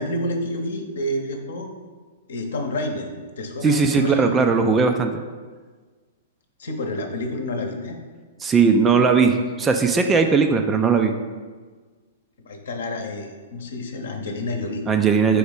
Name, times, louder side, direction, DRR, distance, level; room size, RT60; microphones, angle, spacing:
voice 1, 0.0-1.7 2.3-3.1 3.4-4.5 6.6-8.0 12.4-14.8, left 1 dB, 60° left, 4 dB, 0.9 m, -29 dB
voice 2, 3.6-5.2 8.4-11.1 14.9-15.4, right 5 dB, 15° right, 6 dB, 0.4 m, -18 dB
4.9 x 3.9 x 5.2 m, 1.4 s
figure-of-eight pair, 110°, 0 cm